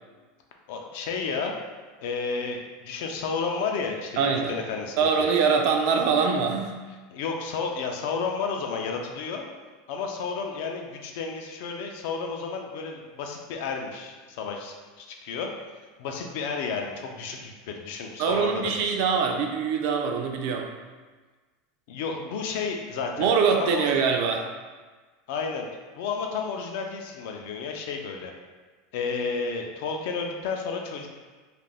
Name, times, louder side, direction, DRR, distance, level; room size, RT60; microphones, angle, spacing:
voice 1, 0.7-1.5 2.0-5.3 7.1-9.4 9.9-15.5 16.0-19.0 21.9-23.3 23.6-23.9 25.3-25.7 26.0-28.3 28.9-31.1, left 5 dB, 65° left, 2 dB, 0.4 m, -32 dB
voice 2, 4.2-4.6 5.0-6.7 18.2-20.7 23.2-24.4, right 5 dB, 55° right, 3 dB, 0.3 m, -23 dB
2.4 x 2.1 x 3.3 m, 1.4 s
supercardioid pair, 155°, 0 cm